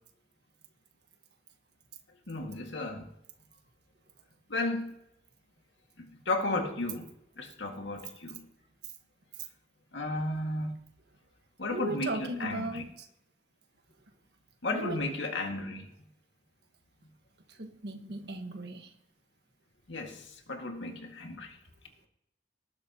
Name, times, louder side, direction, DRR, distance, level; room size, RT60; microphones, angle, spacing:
voice 1, 2.3-3.1 4.5-4.9 6.0-8.4 9.9-10.7 11.6-12.8 14.6-15.9 19.9-21.6, left 2 dB, 80° left, 3 dB, 2.0 m, -34 dB
voice 2, 11.7-13.1 14.7-15.0 17.6-18.9, right 2 dB, 60° right, 5 dB, 1.5 m, -37 dB
19.0 x 10.5 x 3.0 m, 0.80 s
head